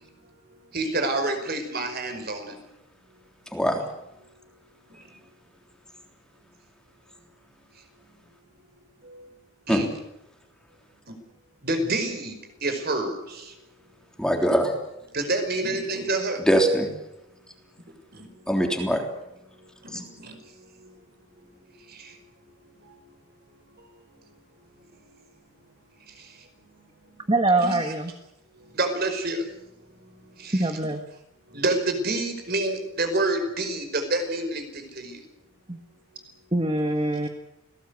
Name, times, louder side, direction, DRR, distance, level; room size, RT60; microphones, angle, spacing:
voice 1, 0.7-2.5 9.0-9.2 9.7-9.9 11.1-11.2 11.6-13.5 15.1-16.4 19.8-20.4 21.9-22.2 27.6-27.8 28.7-29.4 30.4-30.7 31.5-35.2, right 2 dB, 50° right, 6 dB, 5.2 m, -28 dB
voice 2, 3.5-3.8 9.7-9.8 14.2-14.7 16.4-16.9 18.5-19.0 19.9-20.0, equal, 5° left, 2 dB, 3.5 m, -22 dB
voice 3, 27.3-28.1 30.5-31.0 35.7-35.8 36.5-37.3, right 2 dB, 25° right, 6 dB, 1.5 m, -23 dB
29.0 x 18.5 x 8.2 m, 0.88 s
head